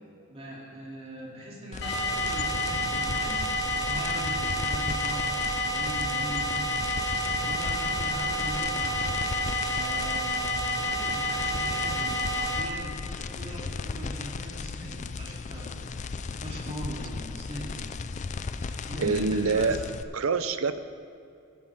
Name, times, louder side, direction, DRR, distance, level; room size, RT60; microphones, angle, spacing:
voice 1, 0.3-7.0 7.5-9.1 9.7-15.8 16.4-17.8 18.9-19.8, equal, 30° right, -5 dB, 3.0 m, -40 dB
sound 1, 1.7-20.0, left 4 dB, 35° left, 0.4 m, -36 dB
sound 2, 1.8-12.6, left 1 dB, 55° left, 2.5 m, -29 dB
voice 2, 19.0-19.8 20.1-20.8, right 4 dB, 85° right, 11 dB, 0.6 m, -25 dB
15.5 x 11.5 x 3.6 m, 2.5 s
head